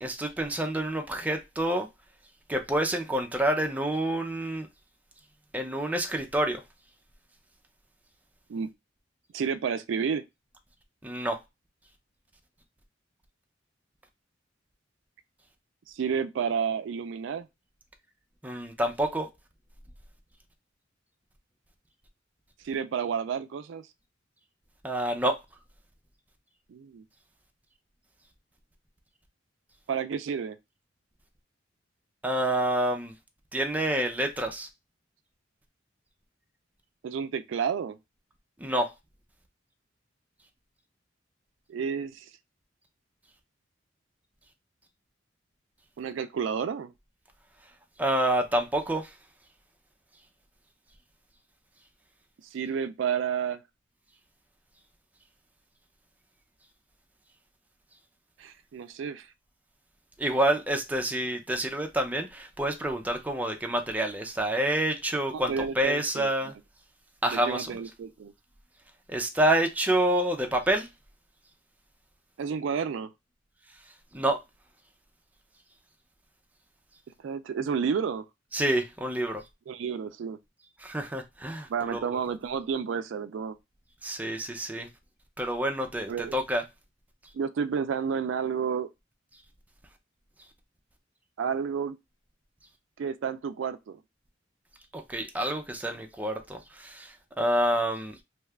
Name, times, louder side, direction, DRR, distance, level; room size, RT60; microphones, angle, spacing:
voice 1, 0.0-1.9 2.5-4.7 5.5-6.6 11.0-11.4 18.4-19.3 24.8-25.4 32.2-33.1 33.5-34.7 38.6-38.9 48.0-49.1 60.2-66.5 67.2-67.8 69.1-70.9 74.1-74.4 78.5-79.4 80.8-82.0 84.0-84.9 85.4-86.6 94.9-98.1, right 1 dB, 10° right, 0.5 m, -28 dB
voice 2, 9.3-10.2 15.9-17.5 22.6-23.9 26.7-27.0 29.9-30.6 37.0-38.0 41.7-42.3 46.0-46.9 52.5-53.6 58.4-59.3 65.3-66.3 67.3-68.3 72.4-73.1 77.2-78.2 79.7-80.4 81.7-83.6 86.1-86.3 87.3-88.9 91.4-92.0 93.0-94.0, right 6 dB, 80° right, 0.3 m, -31 dB
2.8 x 2.3 x 3.3 m
head